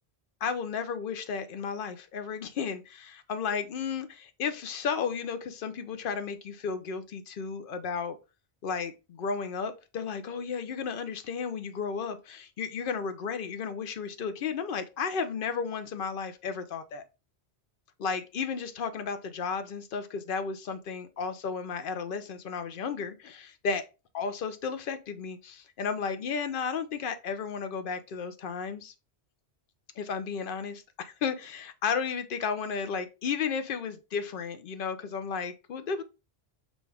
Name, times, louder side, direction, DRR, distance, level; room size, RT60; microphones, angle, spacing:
voice 1, 0.4-8.2 8.6-17.0 18.0-23.8 24.1-28.9 30.0-36.0, left 6 dB, 60° left, 0.7 m, -33 dB
6.2 x 2.4 x 3.3 m
omnidirectional pair, 1.1 m